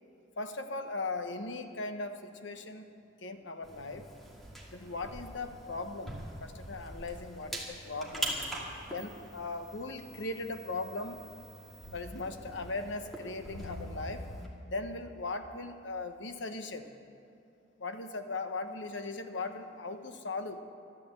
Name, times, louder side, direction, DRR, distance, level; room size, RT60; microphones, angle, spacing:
voice 1, 0.4-2.9 3.2-4.1 4.7-8.4 8.9-11.2 11.9-14.2 14.7-16.9 17.8-20.6, left 3 dB, 75° left, 7 dB, 1.1 m, -38 dB
sound 1, 3.6-14.5, right 1 dB, ahead, 2.2 m, -43 dB
13.0 x 12.5 x 8.1 m, 2.7 s
head